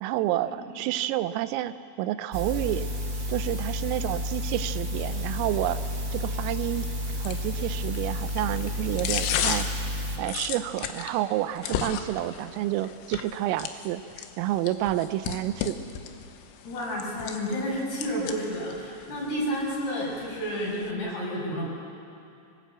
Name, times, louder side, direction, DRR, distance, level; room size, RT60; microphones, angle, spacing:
voice 1, 0.0-2.9 3.3-5.8 6.1-6.9 7.2-9.7 10.2-15.8, right 14 dB, 90° right, 12 dB, 3.4 m, -29 dB
sound 1, 2.3-10.2, equal, 30° right, 1.5 m, -31 dB
sound 2, 5.0-20.9, left 9 dB, 85° left, 3.8 m, -37 dB
voice 2, 16.6-21.6, equal, 60° left, -4 dB, 7.9 m, -30 dB
25.0 x 19.0 x 8.1 m, 2.6 s
omnidirectional pair, 5.8 m